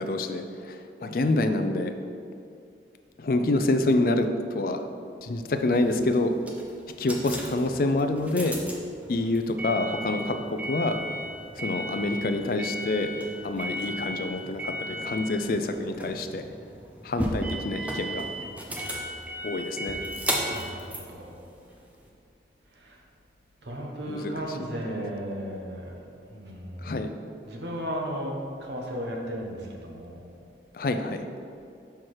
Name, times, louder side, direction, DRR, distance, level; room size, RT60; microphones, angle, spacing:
voice 1, 0.0-1.9 3.2-4.8 5.2-6.3 7.0-8.6 9.1-11.0 11.6-13.1 13.4-16.4 17.0-18.2 19.4-20.0 24.1-24.3 26.8-27.1 30.7-31.3, left 2 dB, 50° left, 8 dB, 0.4 m, -27 dB
sound 1, 5.6-22.1, equal, 10° right, 0.6 m, -35 dB
voice 2, 20.5-21.4 22.7-23.0 23.6-25.9 26.2-27.0 27.4-30.3, equal, 80° right, 0 dB, 1.0 m, -35 dB
5.7 x 4.6 x 4.7 m, 2.5 s
head